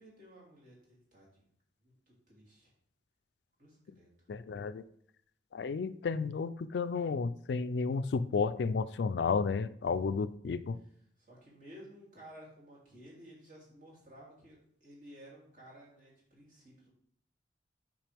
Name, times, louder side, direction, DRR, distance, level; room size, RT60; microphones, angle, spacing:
voice 1, 0.0-1.4 1.8-2.7 3.6-4.3 11.2-16.9, equal, 45° right, -5 dB, 2.8 m, -55 dB
voice 2, 4.3-4.8 5.5-10.8, left 5 dB, 70° left, 13 dB, 0.3 m, -32 dB
9.0 x 5.0 x 3.4 m, 0.67 s
head